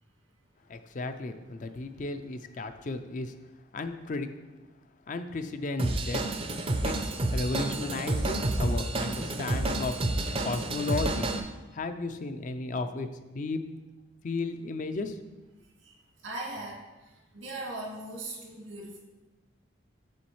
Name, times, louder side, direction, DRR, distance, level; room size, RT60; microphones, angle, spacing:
voice 1, 0.7-3.3 3.7-4.3 5.1-6.2 6.8-9.9 10.4-11.3 11.7-13.6 14.2-15.2, left 3 dB, 40° left, 8 dB, 0.4 m, -34 dB
Drum kit / Drum, 5.8-11.4, right 2 dB, 30° right, 0.4 m, -29 dB
voice 2, 15.8-19.0, right 2 dB, 90° right, -3 dB, 2.0 m, -40 dB
7.1 x 7.0 x 3.1 m, 1.1 s
head